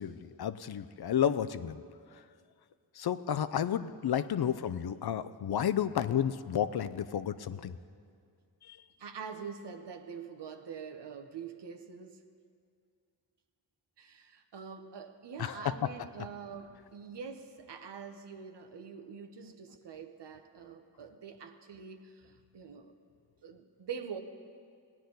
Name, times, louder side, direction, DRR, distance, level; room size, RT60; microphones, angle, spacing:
voice 1, 0.0-1.8 3.0-7.8 8.6-8.8 15.4-15.5, left 9 dB, 60° left, 13 dB, 0.6 m, -31 dB
voice 2, 9.0-12.2 14.0-22.9 23.4-24.2, right 6 dB, 65° right, 7 dB, 1.0 m, -45 dB
18.0 x 9.9 x 3.9 m, 2.2 s
cardioid pair, 55°, 44 cm